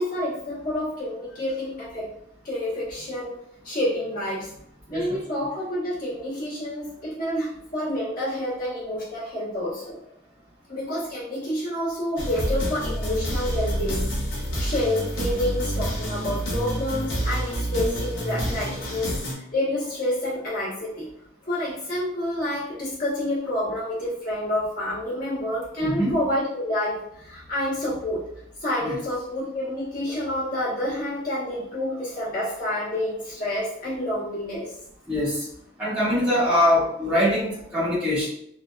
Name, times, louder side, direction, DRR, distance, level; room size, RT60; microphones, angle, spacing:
voice 1, 0.0-2.0 2.4-3.3 3.6-4.5 4.9-10.0 10.7-14.0 14.6-19.2 19.5-21.1 21.5-28.2 28.6-34.7, left 1 dB, 45° left, -9 dB, 1.1 m, -28 dB
sound 1, 12.2-19.3, equal, 85° left, 0.8 m, -28 dB
voice 2, 25.8-26.1 28.8-29.0 35.1-35.4 35.8-38.3, left 1 dB, 5° right, -13 dB, 0.9 m, -23 dB
2.7 x 2.1 x 2.2 m, 0.74 s
head